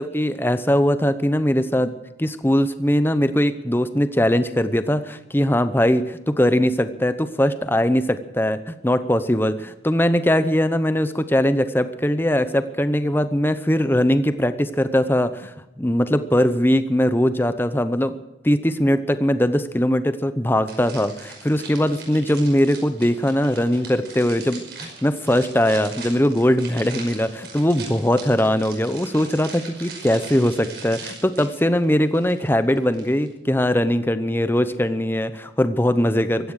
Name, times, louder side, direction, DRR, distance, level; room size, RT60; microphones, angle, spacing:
voice 1, 0.0-1.9 2.2-36.5, equal, 10° left, 11 dB, 0.8 m, -21 dB
sound 1, 20.7-33.3, right 4 dB, 60° right, 5.6 m, -40 dB
16.5 x 13.5 x 6.5 m, 0.94 s
head